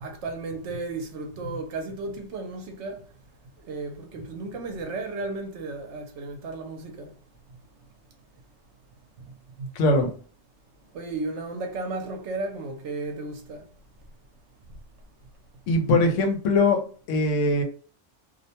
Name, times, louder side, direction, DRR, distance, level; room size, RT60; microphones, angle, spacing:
voice 1, 0.0-3.0 3.7-7.1 9.6-9.7 10.9-13.6, right 3 dB, 75° right, 0.9 m, -34 dB
voice 2, 9.8-10.1 15.7-16.8 17.1-17.6, left 2 dB, 85° left, 1.0 m, -21 dB
2.5 x 2.1 x 2.8 m
omnidirectional pair, 1.2 m